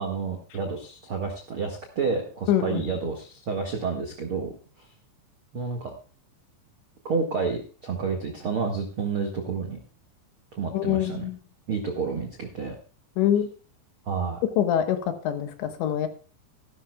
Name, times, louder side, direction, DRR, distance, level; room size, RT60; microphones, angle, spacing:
voice 1, 0.0-4.5 5.5-5.9 7.0-9.8 10.5-11.3 11.7-12.8 14.0-14.4, right 5 dB, 65° right, 2 dB, 1.3 m, -30 dB
voice 2, 2.5-2.8 10.7-11.3 13.2-13.5 14.6-15.0 15.2-16.1, left 10 dB, 75° left, 8 dB, 3.4 m, -24 dB
15.0 x 13.0 x 2.3 m, 0.38 s
omnidirectional pair, 5.4 m